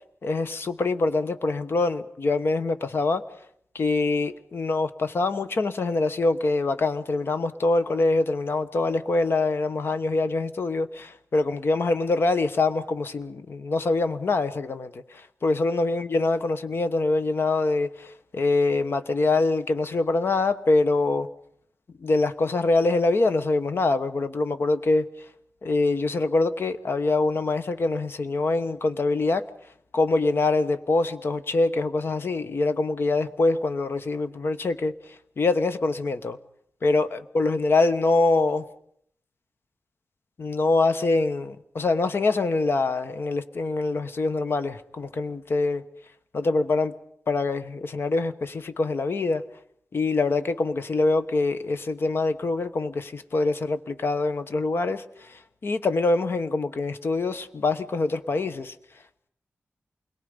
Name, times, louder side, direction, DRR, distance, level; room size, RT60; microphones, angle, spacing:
voice 1, 0.2-3.2 3.7-21.3 22.0-25.1 25.6-29.5 29.9-36.4 36.8-38.6 40.4-45.8 46.3-46.9 47.3-49.4 49.9-58.7, left 3 dB, 55° left, 1.1 m, -24 dB
28.0 x 22.0 x 5.3 m
wide cardioid pair, 130°, 5 cm